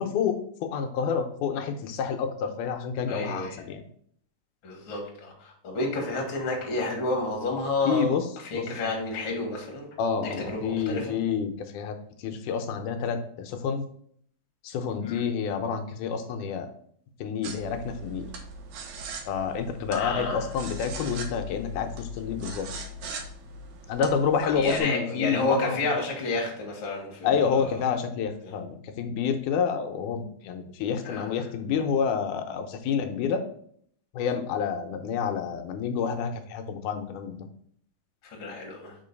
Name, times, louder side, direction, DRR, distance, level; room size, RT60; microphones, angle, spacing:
voice 1, 0.0-3.8 7.8-8.2 8.5-8.7 10.0-13.9 14.6-16.7 17.2-18.3 19.3-22.7 23.9-25.8 27.2-33.5 34.1-37.5, left 6 dB, 85° left, 6 dB, 2.2 m, -28 dB
voice 2, 3.1-3.6 4.6-8.1 8.4-9.9 10.2-11.1 15.0-15.2 19.9-20.4 24.5-27.8 28.4-28.5 31.0-31.4 38.2-39.0, left 2 dB, 45° left, 0 dB, 2.0 m, -30 dB
sound 1, 17.4-24.8, equal, 70° right, 1.7 m, -40 dB
5.1 x 3.8 x 5.2 m, 0.62 s
omnidirectional pair, 3.6 m